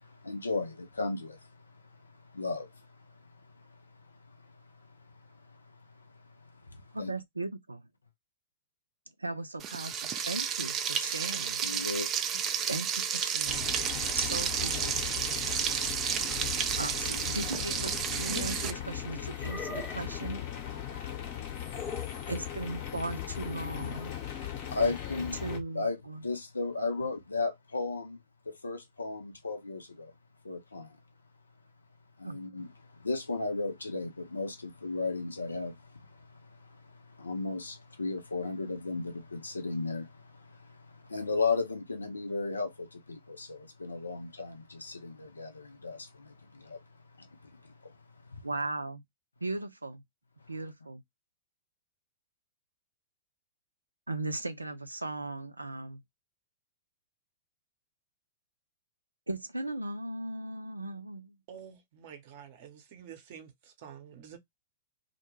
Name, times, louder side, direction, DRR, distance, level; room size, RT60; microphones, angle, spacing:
voice 1, 0.0-1.5 2.3-2.8 5.5-6.1 6.7-7.1 11.6-12.1 12.3-12.4 21.0-21.3 24.3-25.4 25.7-28.2 28.5-30.1 30.4-30.9 32.2-32.7 33.0-46.8 47.2-47.9 48.3-48.4, left 3 dB, 80° left, 0.5 m, -35 dB
voice 2, 6.9-7.8 9.2-10.0 10.2-11.6 12.7-13.7 14.1-14.9 16.7-20.4 22.3-24.2 25.4-26.2 32.2-32.4 48.4-49.0 49.4-50.0 50.5-51.0 54.1-56.0 59.3-61.4, right 2 dB, 85° right, 0.5 m, -37 dB
Frying (food), 9.6-18.7, right 8 dB, 30° right, 0.4 m, -32 dB
sound 1, 13.5-25.6, left 10 dB, 50° left, 0.9 m, -38 dB
sound 2, 17.8-18.7 19.4-20.2 21.7-22.2, left 4 dB, 20° left, 0.6 m, -41 dB
voice 3, 61.5-64.4, right 8 dB, 50° right, 0.8 m, -49 dB
2.2 x 2.1 x 3.0 m
figure-of-eight pair, 105°, 0 cm